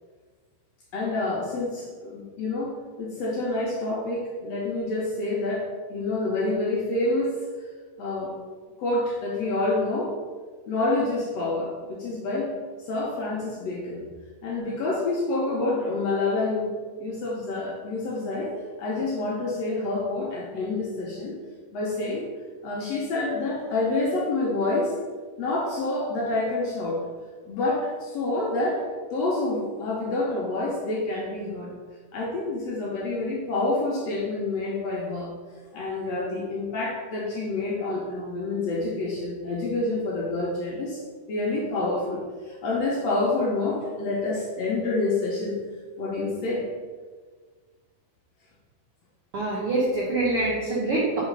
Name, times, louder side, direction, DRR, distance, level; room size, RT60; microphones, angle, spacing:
voice 1, 0.9-7.4 8.0-8.3 8.8-10.1 10.7-12.5 12.9-14.0 14.4-16.7 17.0-21.4 21.7-22.3 22.6-24.9 25.4-27.0 27.4-28.8 29.1-31.7 32.1-35.3 35.7-41.0 41.3-45.5 46.0-46.6, left 2 dB, 70° left, -4 dB, 1.7 m, -27 dB
voice 2, 49.3-51.2, right 2 dB, 70° right, -5 dB, 1.3 m, -25 dB
5.5 x 4.0 x 5.2 m, 1.5 s
omnidirectional pair, 3.8 m